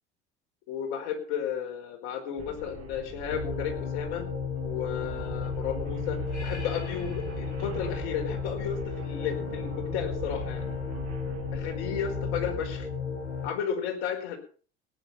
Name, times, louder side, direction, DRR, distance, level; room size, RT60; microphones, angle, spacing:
voice 1, 0.7-4.3 4.6-10.6 11.5-12.9 13.4-14.4, left 8 dB, 60° left, 3 dB, 4.5 m, -33 dB
sound 1, 2.4-11.9, right 4 dB, 45° right, 5.6 m, -44 dB
sound 2, 3.3-13.5, left 4 dB, 90° left, 2.7 m, -34 dB
18.5 x 9.4 x 5.6 m, 0.41 s
figure-of-eight pair, 70°, 34 cm